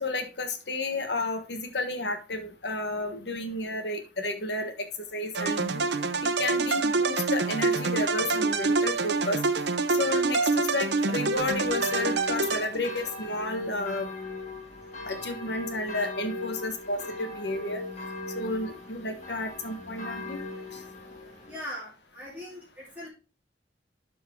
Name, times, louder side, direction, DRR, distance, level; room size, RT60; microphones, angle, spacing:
voice 1, 0.0-5.8 6.4-9.4 9.9-14.1 15.0-17.8 18.4-20.4, left 2 dB, 75° left, 6 dB, 1.4 m, -32 dB
sound 1, 5.3-13.1, right 3 dB, 75° right, 0.9 m, -26 dB
sound 2, 11.3-21.6, left 2 dB, 40° left, 2.4 m, -39 dB
voice 2, 21.5-23.1, left 1 dB, 10° right, -7 dB, 2.7 m, -40 dB
12.0 x 4.6 x 3.7 m, 0.31 s
head